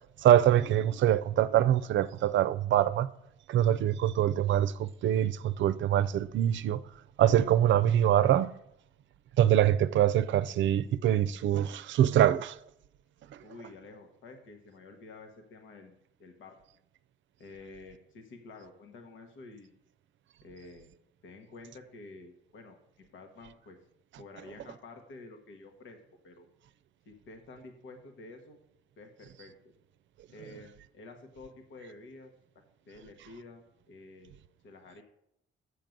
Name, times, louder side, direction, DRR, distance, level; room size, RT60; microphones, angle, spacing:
voice 1, 0.2-3.1 3.5-6.8 7.2-8.5 9.4-12.6, right 11 dB, 70° right, 0.5 m, -24 dB
voice 2, 13.4-16.5 17.4-19.8 20.4-20.9 21.2-23.8 24.2-26.0 26.2-26.5 27.0-28.6 29.0-29.7 30.3-32.3 32.9-34.3 34.6-35.0, left 3 dB, 80° left, 1.3 m, -50 dB
7.6 x 6.5 x 5.2 m
cardioid pair, 90°, 20 cm